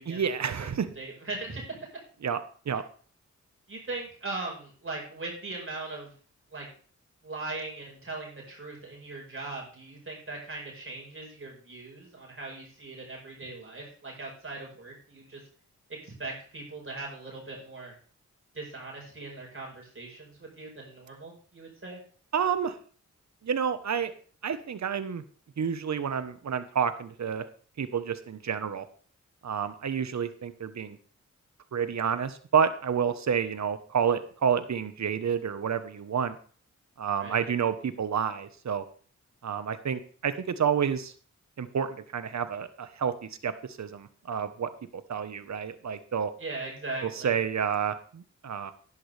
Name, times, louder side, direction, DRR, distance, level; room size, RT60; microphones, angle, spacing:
voice 1, 0.1-0.9 2.2-2.4 2.7-2.8 22.3-22.7 23.4-24.1 24.4-25.2 25.6-27.5 27.8-28.9 29.4-31.0 31.7-36.4 37.0-38.8 39.4-41.1 41.6-43.1 43.4-43.5 43.8-46.3 47.0-48.7, right 7 dB, 65° right, 11 dB, 1.2 m, -29 dB
voice 2, 0.9-1.8 3.7-6.1 6.5-6.7 7.2-15.4 15.9-17.9 18.5-22.0 37.2-37.4 46.4-47.4, right 3 dB, 45° right, -1 dB, 5.1 m, -39 dB
11.0 x 11.0 x 3.4 m, 0.43 s
cardioid pair, 60°, 30 cm